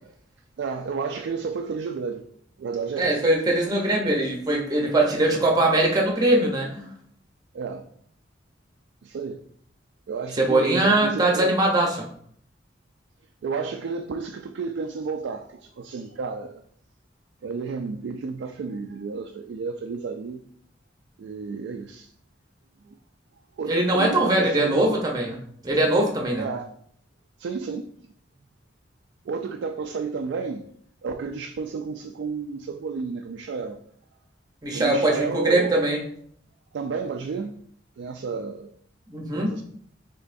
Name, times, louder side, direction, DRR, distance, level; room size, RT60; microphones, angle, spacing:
voice 1, 0.6-2.2 2.6-3.2 7.5-7.9 9.0-9.4 10.1-11.6 13.4-16.6 17.4-20.4 21.2-22.1 22.9-23.0 23.6-25.0 26.4-26.7 27.4-27.9 29.3-30.7 31.0-33.8 34.7-35.8 36.7-37.6 38.0-38.7 39.3-39.6, right 5 dB, 75° right, 5 dB, 0.3 m, -31 dB
voice 2, 3.0-6.9 10.4-12.1 23.7-25.4 25.6-26.5 34.6-36.0 39.1-39.5, right 1 dB, 20° right, 0 dB, 0.7 m, -21 dB
5.2 x 3.6 x 2.6 m, 0.64 s
head